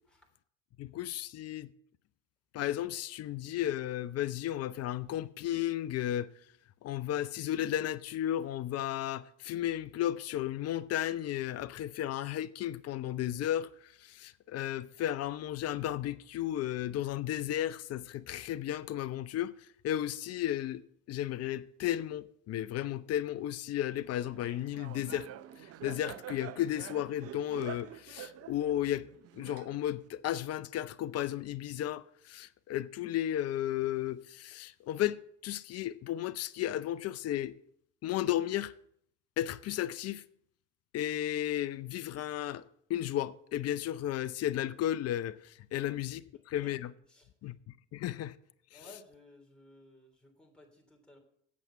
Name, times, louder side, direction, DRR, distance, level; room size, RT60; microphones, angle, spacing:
voice 1, 0.8-1.7 2.5-6.3 6.8-19.5 19.8-20.8 21.1-25.3 25.6-29.1 29.3-37.6 38.0-38.7 39.4-40.2 40.9-42.6 42.9-46.9 47.4-47.6 47.9-48.3 48.7-48.8, left 12 dB, 40° left, 0.6 m, -34 dB
Laughter, 24.2-30.1, right 11 dB, 40° right, 0.6 m, -47 dB
voice 2, 46.3-46.8 47.1-47.5 48.7-51.2, left 2 dB, ahead, 3.2 m, -58 dB
8.4 x 7.3 x 6.9 m
hypercardioid pair, 75°, 37 cm